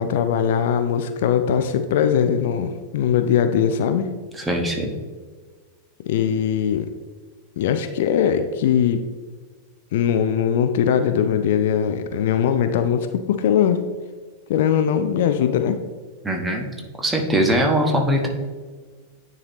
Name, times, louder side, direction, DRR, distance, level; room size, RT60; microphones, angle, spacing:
voice 1, 0.0-4.1 6.1-6.9 7.6-9.1 9.9-13.8 14.5-15.8, left 8 dB, 55° left, 9 dB, 0.4 m, -20 dB
voice 2, 4.3-4.9 16.2-16.7 17.0-18.3, equal, 10° right, 2 dB, 1.2 m, -21 dB
9.7 x 4.0 x 3.0 m, 1.5 s
figure-of-eight pair, 90°, 0 cm